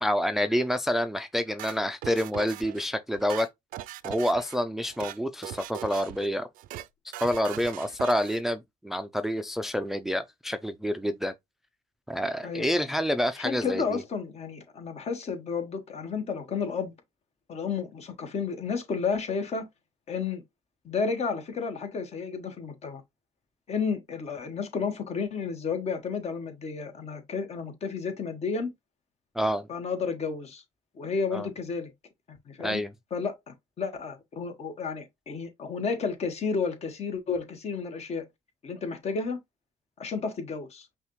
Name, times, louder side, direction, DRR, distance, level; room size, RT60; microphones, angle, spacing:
voice 1, 0.0-3.5 4.0-6.5 7.2-11.3 12.1-14.0 29.4-29.7 31.3-31.5 32.6-32.9, equal, ahead, 0.4 m, -28 dB
sound 1, 1.6-2.9 3.2-4.6 4.8-5.2 5.4-6.3 6.5-6.9 7.1-8.4, right 13 dB, 75° right, 0.4 m, -40 dB
voice 2, 13.4-16.9 17.5-19.7 20.1-20.4 20.8-23.0 23.7-28.7 29.7-30.6 30.9-31.9 32.3-32.8 33.1-38.2 38.6-39.4 40.0-40.9, left 5 dB, 50° left, 1.3 m, -32 dB
5.5 x 2.4 x 3.1 m
cardioid pair, 95°, 15 cm